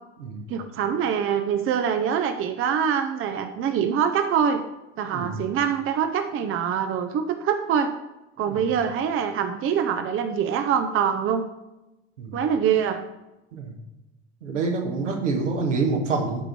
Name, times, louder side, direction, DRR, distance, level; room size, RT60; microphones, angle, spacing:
voice 1, 0.5-4.6 5.0-7.9 8.4-11.5 12.3-13.0, right 8 dB, 35° right, 8 dB, 0.7 m, -24 dB
voice 2, 5.1-5.4 8.5-8.6 12.2-12.4 13.5-13.7 14.4-16.4, right 4 dB, 75° right, 1 dB, 1.6 m, -27 dB
13.0 x 5.2 x 4.5 m, 0.98 s
figure-of-eight pair, 60°, 37 cm